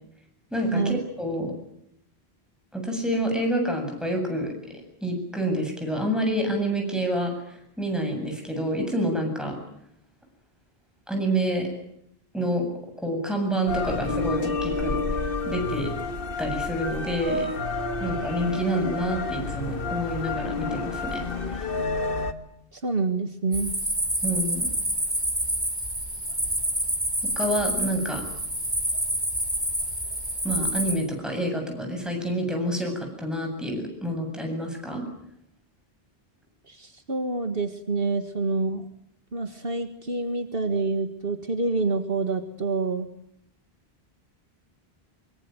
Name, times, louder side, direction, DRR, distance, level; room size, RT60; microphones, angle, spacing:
voice 1, 0.5-1.5 2.7-4.5 5.0-9.6 11.1-11.7 12.3-12.6 13.0-15.0 15.4-15.9 16.4-17.5 18.0-21.7 24.2-24.7 27.4-28.2 30.4-35.0, right 1 dB, ahead, 2 dB, 7.8 m, -28 dB
sound 1, 13.7-22.3, left 3 dB, 60° left, 1.7 m, -29 dB
voice 2, 22.7-23.7 36.7-38.9 39.3-43.1, right 3 dB, 65° right, 7 dB, 1.9 m, -27 dB
sound 2, 23.5-30.9, right 1 dB, 25° right, 5.9 m, -28 dB
24.0 x 23.5 x 9.3 m, 0.73 s
omnidirectional pair, 1.1 m